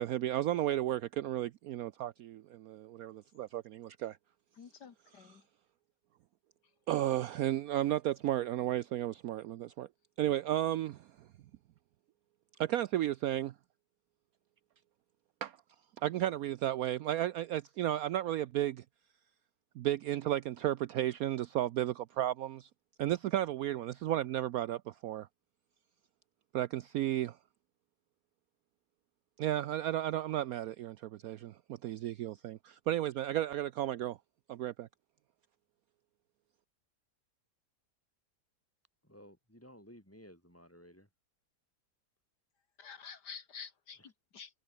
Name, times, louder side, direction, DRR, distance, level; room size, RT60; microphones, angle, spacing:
voice 1, 0.0-4.2 6.9-9.9 10.2-11.1 12.6-13.5 15.4-15.6 16.0-18.8 19.8-22.7 23.0-25.3 26.5-27.4 29.4-34.2 34.5-34.9, right 13 dB, 70° right, 1.0 m, -33 dB
voice 2, 4.5-5.5 42.8-44.6, left 6 dB, 80° left, 2.3 m, -49 dB
voice 3, 39.0-41.1, equal, 10° left, 7.7 m, -56 dB
omnidirectional pair, 1.8 m